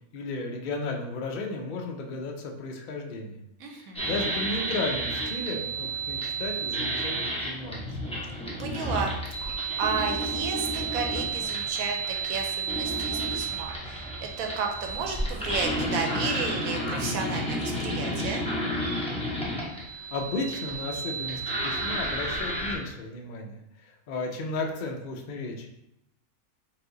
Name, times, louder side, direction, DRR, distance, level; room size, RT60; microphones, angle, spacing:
voice 1, 0.1-3.4 3.8-7.2 7.4-8.0 20.1-23.6 24.1-25.7, left 3 dB, 75° left, 2 dB, 0.4 m, -34 dB
voice 2, 3.6-4.1 8.6-18.4, right 5 dB, 80° right, 2 dB, 1.0 m, -33 dB
sound 1, 4.0-22.8, right 2 dB, 5° left, 0.7 m, -31 dB
4.8 x 2.5 x 3.8 m, 0.83 s
omnidirectional pair, 1.5 m